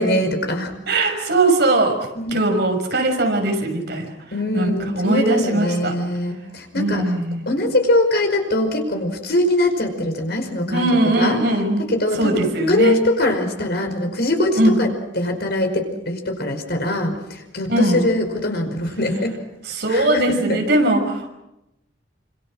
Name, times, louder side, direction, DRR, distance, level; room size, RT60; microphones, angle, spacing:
voice 1, 0.0-0.7 2.2-2.4 4.3-7.0 7.5-10.9 11.2-11.4 11.8-14.9 15.2-19.4 19.9-20.6, left 1 dB, 55° left, 5 dB, 5.3 m, -22 dB
voice 2, 0.9-2.0 2.3-4.1 4.5-6.0 6.7-7.4 10.7-11.9 12.2-13.0 14.6-14.8 17.7-18.1 19.6-21.3, right 2 dB, 60° right, 3 dB, 6.2 m, -20 dB
28.5 x 26.5 x 6.4 m, 0.89 s
head